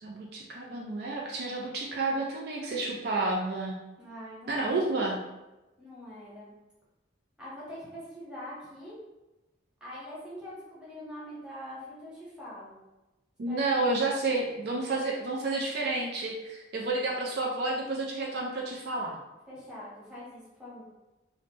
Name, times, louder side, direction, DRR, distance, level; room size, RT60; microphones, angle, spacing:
voice 1, 0.0-3.7 4.5-5.2 13.4-19.2, right 2 dB, 60° right, -2 dB, 0.4 m, -30 dB
voice 2, 4.0-5.0 5.8-6.5 7.4-9.0 9.8-12.8 13.5-14.0 19.5-20.8, equal, 5° right, -9 dB, 1.0 m, -44 dB
2.7 x 2.1 x 3.2 m, 1.0 s
head